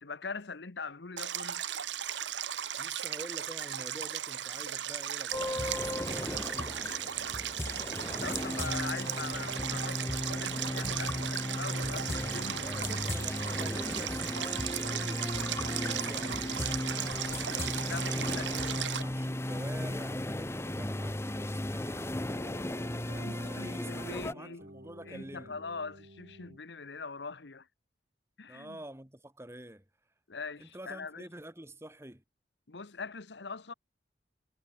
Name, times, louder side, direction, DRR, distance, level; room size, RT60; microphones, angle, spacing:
voice 1, 0.0-1.7 8.1-13.3 17.9-18.8 23.2-24.6 25.1-27.7 28.4-28.8 30.3-31.3 32.7-33.7, left 4 dB, 75° left, 1.1 m, -42 dB
Stream, 1.2-19.0, right 10 dB, 85° right, 1.4 m, -36 dB
voice 2, 2.8-7.0 12.6-22.2 23.0-25.6 28.5-29.8 30.6-32.2, right 1 dB, 15° right, 2.7 m, -47 dB
sound 1, 5.3-24.3, left 1 dB, 15° left, 0.8 m, -35 dB
sound 2, 6.6-26.6, right 1 dB, 55° right, 7.3 m, -56 dB
head